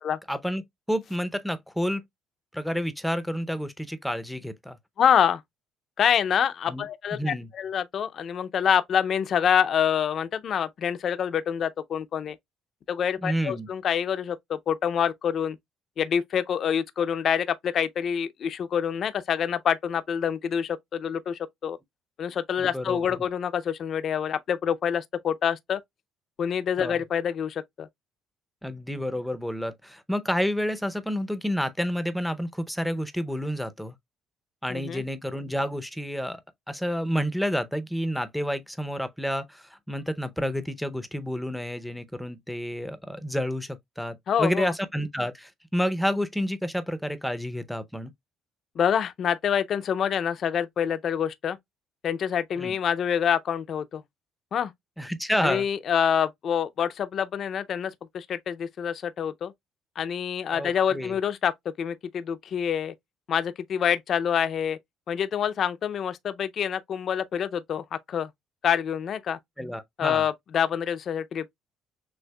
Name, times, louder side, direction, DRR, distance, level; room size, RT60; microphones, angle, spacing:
voice 1, 0.3-0.6 0.9-2.0 2.5-4.8 6.7-6.9 7.1-7.5 13.2-13.7 22.6-23.0 26.8-27.0 28.6-33.9 34.6-36.4 36.7-48.1 52.6-52.7 55.0-55.7 60.5-61.2 69.6-70.3, equal, ahead, 0.6 m, -29 dB
voice 2, 5.0-5.4 6.0-12.4 12.9-15.6 16.0-21.8 22.2-25.8 26.4-27.9 34.7-35.0 44.3-44.7 48.8-51.6 52.0-54.0 54.5-54.7 55.4-59.5 60.0-61.5 61.8-62.9 63.3-64.8 65.1-68.3 68.6-69.4 70.0-71.5, left 8 dB, 50° left, 0.4 m, -26 dB
6.3 x 2.5 x 2.2 m
cardioid pair, 115°, 0 cm